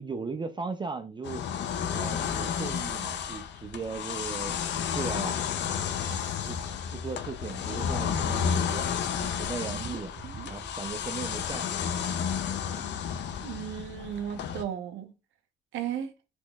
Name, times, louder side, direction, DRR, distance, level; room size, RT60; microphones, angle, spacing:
voice 1, 0.0-1.4 1.9-5.4 6.4-6.6 6.9-8.9 9.2-10.1 10.5-11.9 12.7-13.0, right 4 dB, 25° right, 0.4 m, -37 dB
sound 1, 1.2-14.6, left 7 dB, 65° left, 0.5 m, -32 dB
sound 2, 9.6-11.4 11.7-12.4 13.4-13.5 13.8-13.9 14.2-14.3, right 4 dB, 40° right, 0.8 m, -43 dB
voice 2, 13.4-15.1 15.7-16.1, right 9 dB, 80° right, 0.6 m, -35 dB
4.3 x 3.0 x 2.2 m
cardioid pair, 90°, 20 cm